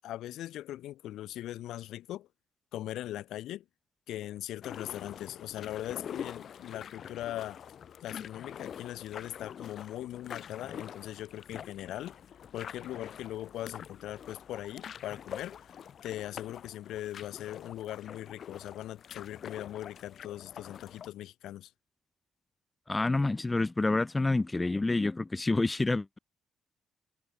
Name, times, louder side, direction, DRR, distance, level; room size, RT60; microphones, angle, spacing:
voice 1, 0.0-2.3 2.7-3.6 4.1-7.6 8.0-12.2 12.5-15.8 16.0-21.7, left 13 dB, 85° left, 8.0 m, -40 dB
sound 1, 4.6-21.1, left 8 dB, 60° left, 5.1 m, -45 dB
voice 2, 22.9-26.2, left 2 dB, 20° left, 0.5 m, -28 dB
cardioid pair, 90°, 0 cm